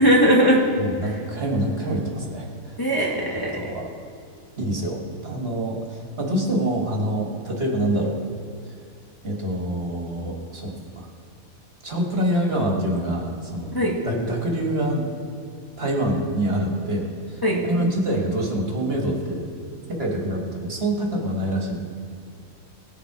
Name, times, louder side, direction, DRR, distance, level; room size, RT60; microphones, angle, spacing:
voice 1, 0.0-0.6 2.8-3.6 13.7-13.9 17.4-17.6, equal, 15° left, -3 dB, 1.2 m, -19 dB
voice 2, 0.8-2.8 3.3-3.9 4.6-8.2 9.2-11.1 11.8-15.0 15.8-19.5 19.9-21.8, right 1 dB, 45° right, 0 dB, 1.7 m, -26 dB
17.5 x 7.0 x 4.7 m, 2.3 s
omnidirectional pair, 1.4 m